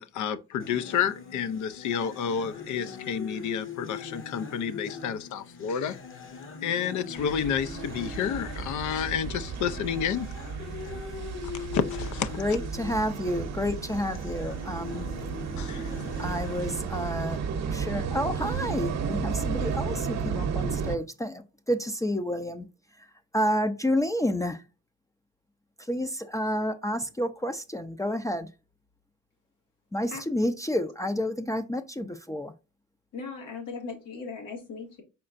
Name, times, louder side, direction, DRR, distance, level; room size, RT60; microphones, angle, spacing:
voice 1, 0.0-6.0 6.6-10.3 11.7-12.3 15.6-15.9, left 8 dB, 75° left, 0.6 m, -30 dB
sound 1, 0.6-16.6, left 5 dB, 45° left, 1.0 m, -41 dB
sound 2, 7.2-21.0, right 6 dB, 65° right, 0.8 m, -33 dB
voice 2, 12.4-15.1 16.2-17.4 17.7-22.7 23.0-23.1 23.3-24.6 25.8-28.5 29.9-32.5, equal, 10° left, 0.4 m, -30 dB
voice 3, 33.1-35.0, left 4 dB, 90° left, 1.9 m, -38 dB
4.4 x 4.3 x 2.4 m
cardioid pair, 90°, 30 cm